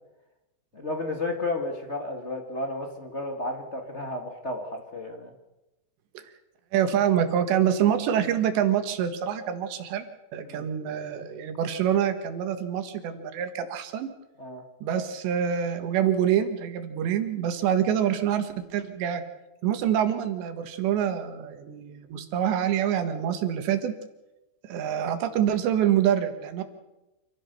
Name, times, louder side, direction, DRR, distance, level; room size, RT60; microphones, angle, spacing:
voice 1, 0.7-5.3 10.5-10.7 14.4-14.6, left 2 dB, 40° left, 4 dB, 1.0 m, -32 dB
voice 2, 6.7-10.1 10.3-14.1 14.8-19.2 19.6-23.9 24.6-26.6, right 9 dB, 85° right, 8 dB, 3.9 m, -26 dB
27.0 x 15.5 x 6.8 m, 1.0 s
omnidirectional pair, 4.9 m